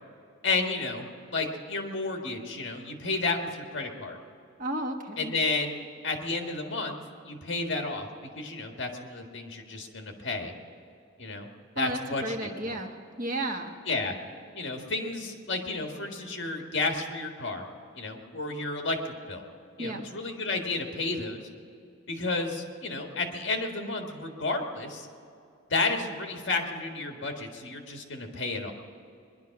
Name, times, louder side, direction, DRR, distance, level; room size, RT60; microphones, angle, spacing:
voice 1, 0.4-4.2 5.2-7.0 7.2-10.5 11.2-11.5 11.7-12.8 13.8-14.1 14.5-17.6 17.9-19.4 19.8-21.5 22.1-25.1 25.7-28.7, left 3 dB, 60° left, 3 dB, 1.7 m, -32 dB
voice 2, 4.6-5.3 11.8-13.7 19.8-20.1, right 1 dB, 40° right, 3 dB, 1.3 m, -33 dB
21.5 x 11.0 x 5.9 m, 2.5 s
head